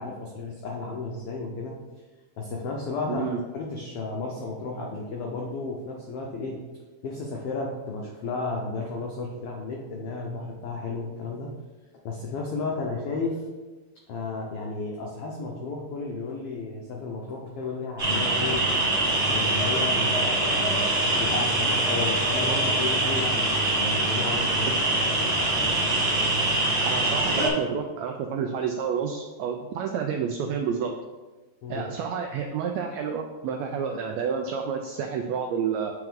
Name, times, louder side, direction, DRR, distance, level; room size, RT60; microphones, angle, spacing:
voice 1, 0.0-1.8 2.4-3.3 3.5-6.7 7.0-11.5 12.0-13.5 14.1-18.7 19.3-24.8 31.6-31.8, left 3 dB, 85° left, -1 dB, 1.3 m, -33 dB
voice 2, 3.1-3.4 26.8-30.9 31.7-35.9, right 6 dB, 85° right, 3 dB, 1.5 m, -29 dB
sound 1, 18.0-27.5, right 2 dB, 40° right, 2.2 m, -24 dB
7.7 x 4.6 x 3.6 m, 1.3 s
omnidirectional pair, 3.6 m